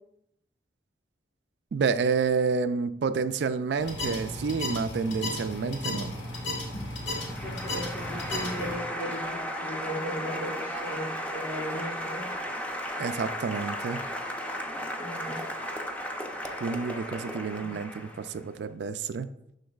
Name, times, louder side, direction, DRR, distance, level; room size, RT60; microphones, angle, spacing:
voice 1, 1.7-6.1 13.0-14.0 16.6-19.3, right 5 dB, 75° right, 12 dB, 0.3 m, -29 dB
sound 1, 3.8-8.8, left 1 dB, 85° left, 1.7 m, -34 dB
Applause, 6.0-18.5, equal, 10° left, 0.6 m, -35 dB
voice 2, 7.4-12.3 15.0-15.4 17.6-17.7, equal, 50° left, -3 dB, 1.3 m, -37 dB
11.5 x 3.9 x 2.3 m, 0.79 s
head